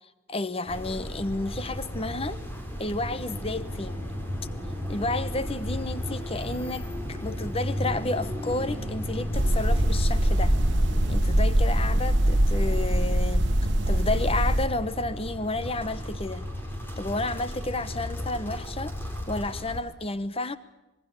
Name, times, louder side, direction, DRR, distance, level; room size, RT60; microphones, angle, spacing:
voice 1, 0.3-2.4 2.8-4.1 4.9-10.6 11.1-13.5 13.9-16.5 17.0-19.0 19.3-20.6, left 2 dB, 30° left, 1.0 m, -31 dB
sound 1, 0.7-19.8, equal, 10° left, 4.2 m, -34 dB
sound 2, 9.3-14.7, right 1 dB, 60° right, 1.7 m, -23 dB
26.0 x 21.5 x 7.0 m
head